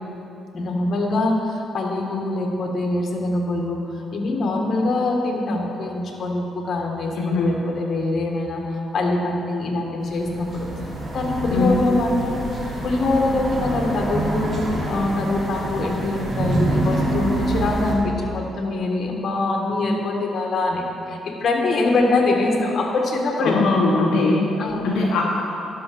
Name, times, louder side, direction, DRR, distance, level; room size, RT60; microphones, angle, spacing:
voice 1, 0.5-10.7 11.1-12.4 12.8-14.6 14.9-23.6 24.6-25.0, left 2 dB, 55° left, 0 dB, 1.6 m, -23 dB
voice 2, 7.1-7.6 11.5-11.8 23.4-24.6 24.8-25.2, left 3 dB, 80° left, -2 dB, 1.0 m, -20 dB
sound 1, 10.0-17.9, right 1 dB, 35° right, 2.4 m, -26 dB
11.5 x 5.8 x 6.1 m, 3.0 s
cardioid pair, 90°, 0 cm